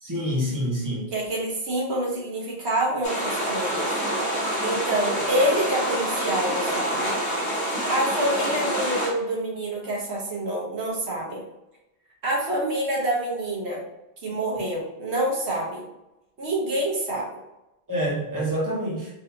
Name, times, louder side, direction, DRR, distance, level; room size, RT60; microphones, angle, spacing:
voice 1, 0.0-1.1 17.9-19.1, equal, 20° right, -5 dB, 1.1 m, -27 dB
voice 2, 1.1-3.9 4.6-7.1 7.9-11.4 12.2-13.8 14.2-15.8 16.4-17.3, right 1 dB, 75° right, -2 dB, 1.3 m, -27 dB
sound 1, 3.0-9.1, right 1 dB, 65° left, 1.2 m, -27 dB
3.9 x 2.7 x 2.8 m, 0.94 s
omnidirectional pair, 1.1 m